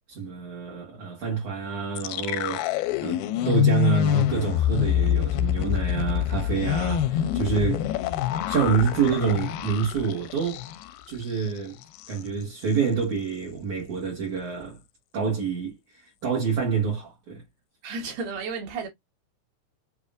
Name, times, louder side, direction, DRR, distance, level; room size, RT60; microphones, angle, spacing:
voice 1, 0.1-7.9 8.5-10.6 11.1-11.8 12.1-14.8 15.1-17.4, right 6 dB, 60° right, 2.4 m, -27 dB
sound 1, 2.0-11.0 11.3-11.5 11.8-12.2, left 12 dB, 80° left, 2.1 m, -26 dB
voice 2, 17.8-18.9, right 4 dB, 75° right, 3.6 m, -32 dB
7.3 x 2.8 x 2.4 m
omnidirectional pair, 4.7 m